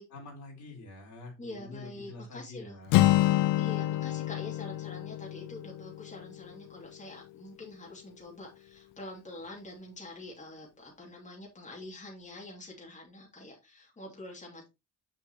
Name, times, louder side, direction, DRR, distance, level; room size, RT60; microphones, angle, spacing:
voice 1, 0.1-3.0, left 2 dB, 65° left, 3.9 m, -46 dB
voice 2, 1.4-2.8 3.6-14.7, left 2 dB, 25° left, 2.7 m, -46 dB
Acoustic guitar, 2.9-6.8, left 16 dB, 85° left, 0.5 m, -27 dB
6.4 x 6.2 x 3.0 m
cardioid pair, 75°, 31 cm